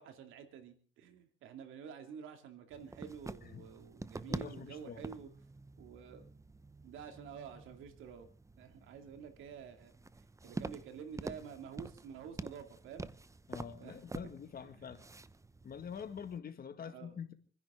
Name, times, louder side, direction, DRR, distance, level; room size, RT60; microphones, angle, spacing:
voice 1, 0.0-5.3 5.8-6.3 6.8-8.3 8.6-9.9 10.4-13.1 13.8-14.0 14.6-14.9 16.8-17.2, right 7 dB, 85° right, 2.4 m, -49 dB
sound 1, 2.7-16.4, right 3 dB, 15° right, 0.7 m, -47 dB
voice 2, 4.2-5.0 13.5-15.0 15.6-17.3, left 7 dB, 50° left, 1.8 m, -46 dB
28.5 x 10.5 x 3.7 m
cardioid pair, 90°, 20 cm